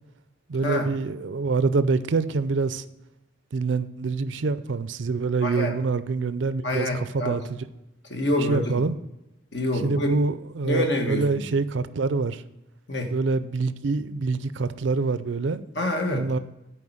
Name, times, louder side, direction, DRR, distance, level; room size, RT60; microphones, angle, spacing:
voice 1, 0.5-2.8 3.5-7.6 8.5-9.0 9.8-12.4 13.1-15.6 16.1-16.4, right 4 dB, 70° right, 13 dB, 0.5 m, -25 dB
voice 2, 5.4-5.8 6.6-7.4 8.1-8.8 9.5-10.1 10.6-11.4 12.9-13.1 15.7-16.3, left 1 dB, 60° left, 3 dB, 1.6 m, -26 dB
9.8 x 4.6 x 7.2 m, 0.94 s
head